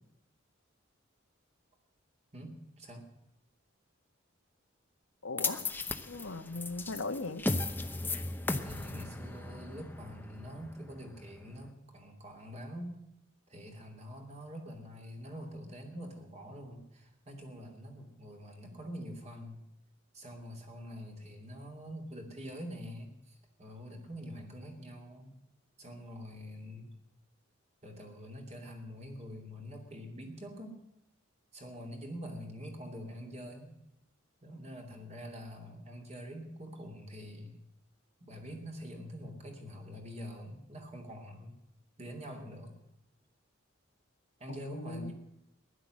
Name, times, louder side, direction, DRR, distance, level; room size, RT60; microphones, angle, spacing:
voice 1, 2.3-3.1 8.6-13.0 13.5-19.6 20.1-25.3 25.8-27.0 27.8-30.8 31.5-33.7 34.4-37.6 38.2-41.6 42.0-42.8 44.4-45.1, equal, 35° right, 2 dB, 2.7 m, -45 dB
voice 2, 5.2-5.6 6.1-7.4 44.5-45.1, left 3 dB, 90° left, 6 dB, 1.4 m, -38 dB
sound 1, 5.4-11.7, left 2 dB, 10° left, 0.8 m, -36 dB
15.5 x 11.5 x 7.6 m, 0.87 s
head